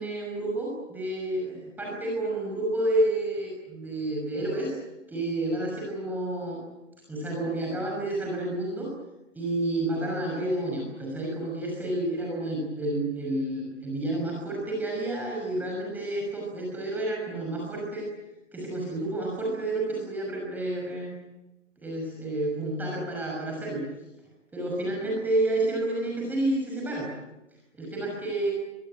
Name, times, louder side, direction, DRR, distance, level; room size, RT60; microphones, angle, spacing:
voice 1, 0.0-4.7 5.1-6.6 7.1-8.9 9.3-18.1 18.5-21.1 21.8-23.8 24.5-27.1 27.7-28.5, right 1 dB, 5° right, -3 dB, 6.0 m, -30 dB
24.5 x 23.5 x 8.9 m, 1.0 s
hypercardioid pair, 150°, 37 cm